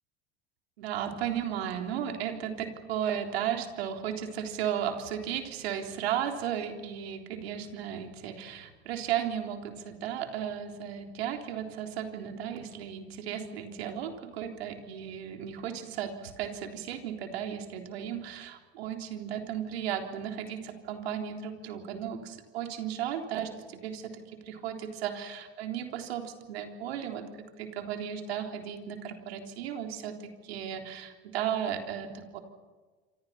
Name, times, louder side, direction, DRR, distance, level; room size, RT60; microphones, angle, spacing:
voice 1, 0.8-32.4, right 9 dB, 85° right, 4 dB, 3.8 m, -35 dB
27.0 x 26.0 x 5.8 m, 1.4 s
hypercardioid pair, 80°, 31 cm